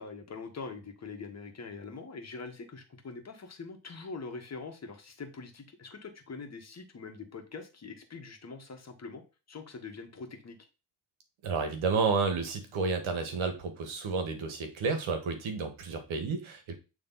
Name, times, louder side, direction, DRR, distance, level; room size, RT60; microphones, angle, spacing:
voice 1, 0.0-9.2 9.5-10.6, left 4 dB, 35° left, 5 dB, 1.5 m, -43 dB
voice 2, 11.4-16.7, right 4 dB, 75° right, 7 dB, 1.8 m, -31 dB
8.7 x 3.5 x 4.1 m, 0.29 s
cardioid pair, 110°, 48 cm